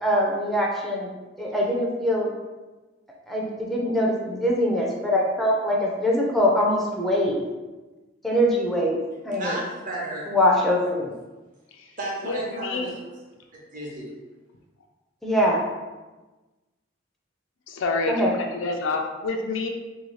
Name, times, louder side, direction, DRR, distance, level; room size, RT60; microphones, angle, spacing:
voice 1, 0.0-1.1 1.4-2.3 3.3-7.4 8.2-9.0 9.2-9.6 10.3-11.1 15.2-15.6 18.1-18.3, equal, ahead, -3 dB, 0.4 m, -23 dB
voice 2, 9.4-10.3 12.0-13.0 13.7-14.1, right 1 dB, 45° right, -3 dB, 0.8 m, -32 dB
voice 3, 12.2-12.9 17.7-19.7, left 3 dB, 90° left, 2 dB, 0.4 m, -28 dB
2.7 x 2.7 x 3.1 m, 1.2 s
head